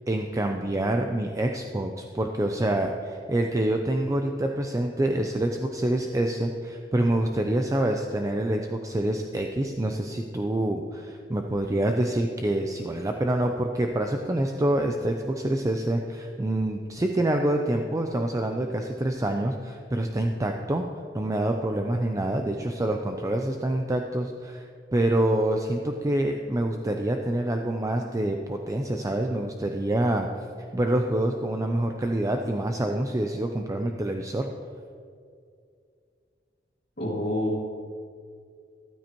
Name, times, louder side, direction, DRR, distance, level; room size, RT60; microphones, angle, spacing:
voice 1, 0.1-20.8 21.1-30.3 30.7-34.5, right 1 dB, 20° right, 3 dB, 0.5 m, -26 dB
voice 2, 37.0-37.6, left 1 dB, 55° left, -9 dB, 2.1 m, -27 dB
13.5 x 12.0 x 3.0 m, 2.3 s
head